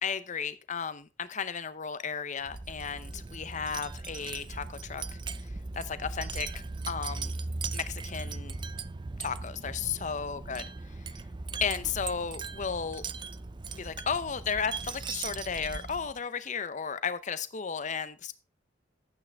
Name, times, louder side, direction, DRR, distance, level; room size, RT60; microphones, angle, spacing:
voice 1, 0.0-5.0 5.7-6.5 6.9-7.4 7.7-8.6 9.2-10.7 11.6-13.0 13.7-18.4, left 6 dB, 40° left, 13 dB, 0.7 m, -34 dB
Wind chime, 2.4-16.2, right 3 dB, 25° right, 0.4 m, -38 dB
11.5 x 8.7 x 3.5 m, 0.30 s
head